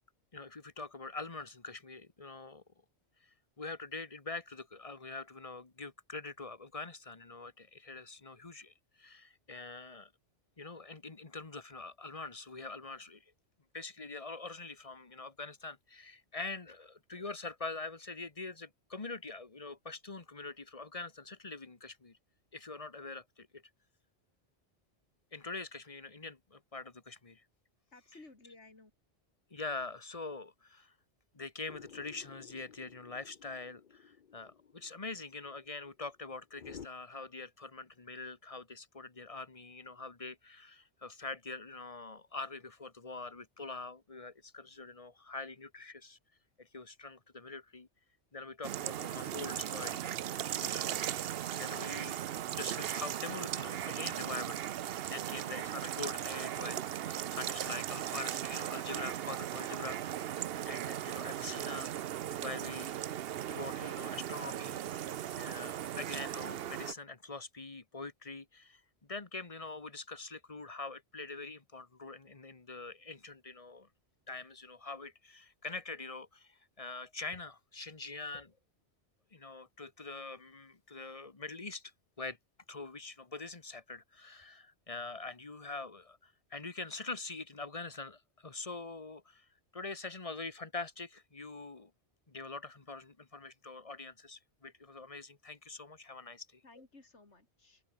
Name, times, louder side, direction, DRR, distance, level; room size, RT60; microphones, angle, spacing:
voice 1, 0.3-2.6 3.2-10.1 10.6-13.3 13.7-22.2 22.5-23.6 25.3-27.4 29.5-30.9 31.3-46.2 46.6-47.9 48.3-52.2 52.5-54.6 55.1-56.8 57.0-61.9 62.4-62.9 63.5-65.1 65.4-73.9 74.3-78.5 79.3-82.4 82.7-91.9 92.3-96.6, left 3 dB, 30° left, 1.4 m, -44 dB
voice 2, 27.9-28.9 96.6-97.8, left 3 dB, 75° left, 4.1 m, -56 dB
sound 1, 31.7-36.9, left 7 dB, 50° left, 0.9 m, -54 dB
sound 2, 48.6-66.9, right 11 dB, 60° right, 0.8 m, -38 dB
omnidirectional pair, 1.2 m